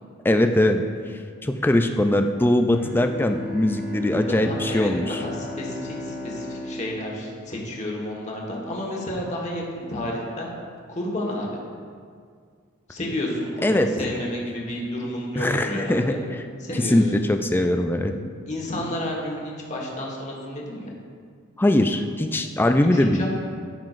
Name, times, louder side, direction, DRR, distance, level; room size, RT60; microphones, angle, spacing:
voice 1, 0.2-0.8 1.4-5.2 13.6-13.9 15.4-16.4 16.9-18.1 21.6-23.3, left 1 dB, 10° left, 6 dB, 0.3 m, -21 dB
Bowed string instrument, 2.7-8.2, left 1 dB, 40° right, 1.1 m, -36 dB
voice 2, 4.1-10.5 10.9-11.6 12.9-16.2 16.6-17.0 18.5-20.9 22.9-23.3, left 1 dB, 35° left, -2 dB, 1.4 m, -31 dB
13.5 x 5.7 x 2.5 m, 2.1 s
head